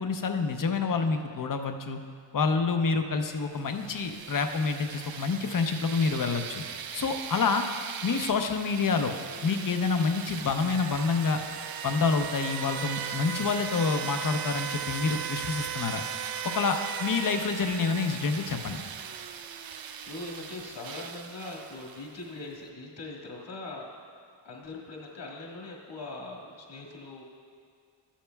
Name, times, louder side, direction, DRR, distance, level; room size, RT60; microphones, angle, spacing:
voice 1, 0.0-2.0 2.3-6.6 6.9-7.6 8.0-9.1 9.4-11.4 11.8-16.0 16.4-18.8, left 4 dB, 45° left, 6 dB, 0.7 m, -28 dB
sound 1, 3.6-22.3, right 8 dB, 55° right, 0.5 m, -38 dB
voice 2, 20.1-23.9 24.4-27.2, left 2 dB, 65° left, -2 dB, 1.8 m, -41 dB
14.0 x 10.0 x 2.3 m, 2.2 s
wide cardioid pair, 140°, 45 cm